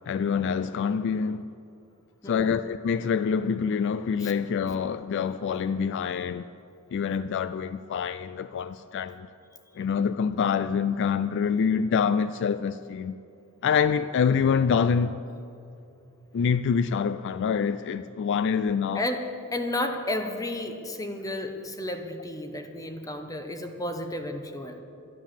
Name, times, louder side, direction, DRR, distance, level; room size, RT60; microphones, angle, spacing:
voice 1, 0.1-1.5 2.2-6.5 6.9-9.3 9.8-13.2 13.6-15.2 16.3-19.1, left 6 dB, 55° left, 0.3 m, -26 dB
voice 2, 2.2-2.6 4.2-4.3 18.9-24.8, left 1 dB, 15° left, 0.9 m, -32 dB
12.0 x 11.0 x 7.3 m
head